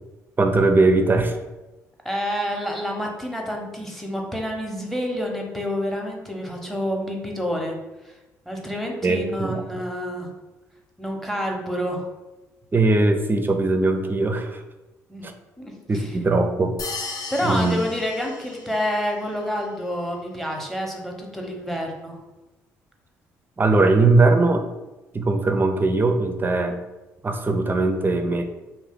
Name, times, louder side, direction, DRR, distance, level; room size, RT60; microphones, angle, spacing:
voice 1, 0.4-1.4 9.0-9.6 12.7-14.6 15.2-15.3 15.9-16.8 17.4-17.8 23.6-24.7 25.1-26.8 27.2-28.4, right 3 dB, 25° right, 6 dB, 0.4 m, -20 dB
voice 2, 2.0-7.8 8.0-8.2 8.5-10.3 11.0-12.1 15.1-15.3 15.6-16.2 17.3-22.2, equal, 5° left, 1 dB, 0.7 m, -28 dB
sound 1, 16.8-19.1, left 4 dB, 55° left, 0.6 m, -35 dB
2.7 x 2.0 x 3.6 m, 1.1 s
hypercardioid pair, 55°, 7 cm